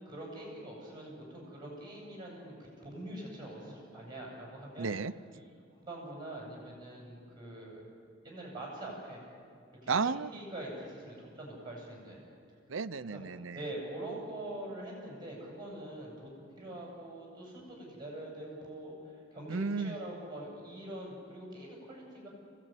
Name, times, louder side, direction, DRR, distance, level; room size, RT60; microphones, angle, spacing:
voice 1, 0.0-4.9 5.8-7.9 8.2-9.2 9.8-9.9 10.3-12.2 13.0-13.2 13.5-16.3 16.6-22.3, right 1 dB, 25° right, -3 dB, 7.6 m, -44 dB
voice 2, 4.8-5.1 9.9-10.3 12.7-13.7 19.5-20.0, right 5 dB, 75° right, 13 dB, 0.7 m, -33 dB
26.5 x 17.0 x 9.2 m, 2.3 s
head